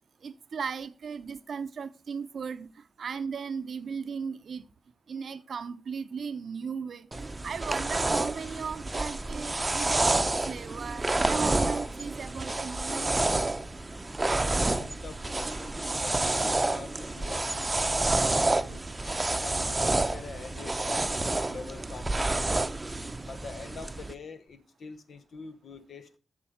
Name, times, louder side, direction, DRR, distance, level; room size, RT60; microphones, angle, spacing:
voice 1, 0.2-4.7 5.1-13.3, right 6 dB, 70° right, 0.6 m, -36 dB
sound 1, 7.1-24.1, right 2 dB, 25° right, 0.7 m, -29 dB
voice 2, 14.4-18.8 19.3-22.5 23.2-26.2, left 4 dB, 70° left, 1.0 m, -45 dB
7.2 x 6.9 x 4.8 m
cardioid pair, 60°, 0 cm